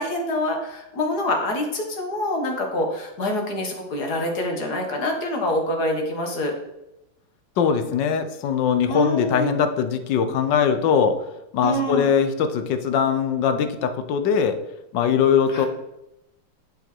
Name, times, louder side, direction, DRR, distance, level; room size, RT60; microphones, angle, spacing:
voice 1, 0.0-6.5 8.9-9.6 11.6-12.1 15.5-15.7, left 1 dB, 50° left, 2 dB, 1.9 m, -26 dB
voice 2, 7.6-11.2 11.5-14.6 14.9-15.7, left 7 dB, 65° left, 8 dB, 1.3 m, -21 dB
11.0 x 4.8 x 4.4 m, 0.89 s
omnidirectional pair, 2.4 m